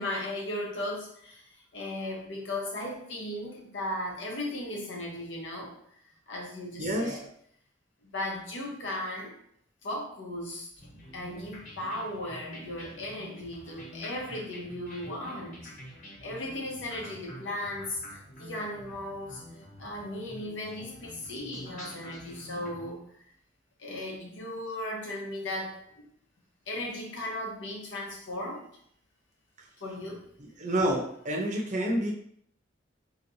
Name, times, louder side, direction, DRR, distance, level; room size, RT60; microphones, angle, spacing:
voice 1, 0.0-5.8 6.3-7.3 8.0-9.3 9.8-10.7 11.1-15.7 16.2-23.0 23.8-26.0 26.7-28.7 29.8-30.3, left 1 dB, 75° left, -2 dB, 1.0 m, -36 dB
voice 2, 6.8-7.2 30.6-32.1, right 1 dB, 40° right, 0 dB, 0.7 m, -28 dB
sound 1, 10.8-22.9, equal, 40° left, 1.3 m, -47 dB
4.0 x 3.0 x 2.7 m, 0.67 s
head